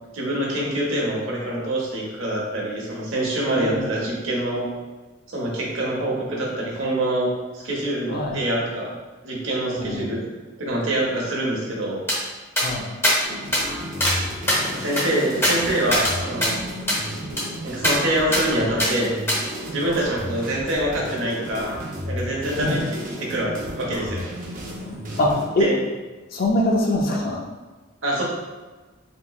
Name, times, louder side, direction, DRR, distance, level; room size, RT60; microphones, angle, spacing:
voice 1, 0.1-4.7 5.3-8.9 9.2-10.2 10.6-12.0 14.7-16.6 17.6-19.1 19.6-21.7 22.1-24.2 25.6-25.8 28.0-28.2, right 1 dB, 75° right, -3 dB, 0.9 m, -25 dB
voice 2, 3.5-3.9 8.1-8.4 9.8-10.1 12.6-12.9 22.6-22.8 25.2-25.7 26.3-27.4, left 1 dB, 50° left, 0 dB, 0.5 m, -23 dB
sound 1, 12.1-12.2 12.6-12.7 13.0-13.2 13.5-13.6 14.0-14.2 14.5-16.1 16.4-16.5 16.9-17.0 17.4-17.5 17.8-18.0 18.3-18.4 18.8-18.9 19.3-19.4, equal, 15° left, 0.8 m, -22 dB
sound 2, 13.2-25.4, equal, 45° right, 0.6 m, -33 dB
3.5 x 2.9 x 2.3 m, 1.3 s
head